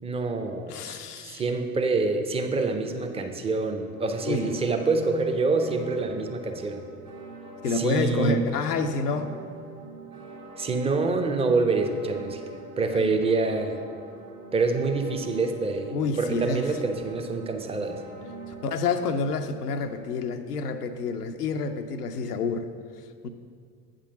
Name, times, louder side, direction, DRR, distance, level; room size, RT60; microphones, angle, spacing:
voice 1, 0.0-6.8 7.7-8.4 10.6-12.4 12.8-13.8 14.5-18.0, right 3 dB, 15° right, 5 dB, 0.5 m, -26 dB
voice 2, 0.7-1.4 4.2-4.6 7.6-9.4 12.9-13.2 15.9-16.8 18.6-22.7 23.2-23.3, left 4 dB, 80° left, 7 dB, 0.6 m, -28 dB
sound 1, 3.9-18.9, right 3 dB, 75° right, 1.5 m, -44 dB
8.3 x 3.8 x 6.6 m, 2.1 s
figure-of-eight pair, 65°, 45 cm